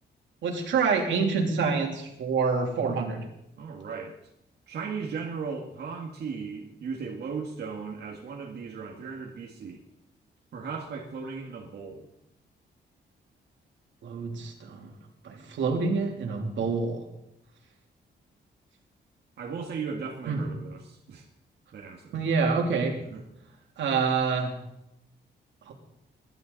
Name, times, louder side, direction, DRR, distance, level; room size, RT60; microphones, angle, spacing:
voice 1, 0.4-3.2 14.0-14.9 15.2-17.0 20.3-20.4 22.1-23.0 23.8-24.5 25.7-25.8, right 5 dB, 85° right, 1 dB, 3.1 m, -27 dB
voice 2, 3.6-4.2 4.7-9.8 10.5-12.1 19.4-21.3 21.7-22.2 23.1-23.2, right 5 dB, 60° right, -1 dB, 1.9 m, -37 dB
21.5 x 12.0 x 4.1 m, 0.83 s
wide cardioid pair, 170°, 19 cm